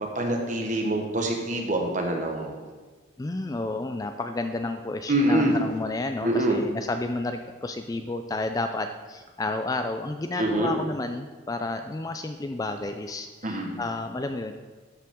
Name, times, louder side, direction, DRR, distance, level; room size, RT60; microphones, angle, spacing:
voice 1, 0.0-2.5 5.1-5.5 6.2-6.6 10.4-10.7 13.4-13.8, right 1 dB, 40° right, 1 dB, 1.2 m, -25 dB
voice 2, 3.2-14.5, left 2 dB, 20° left, 7 dB, 0.3 m, -31 dB
13.0 x 5.7 x 3.6 m, 1.4 s
head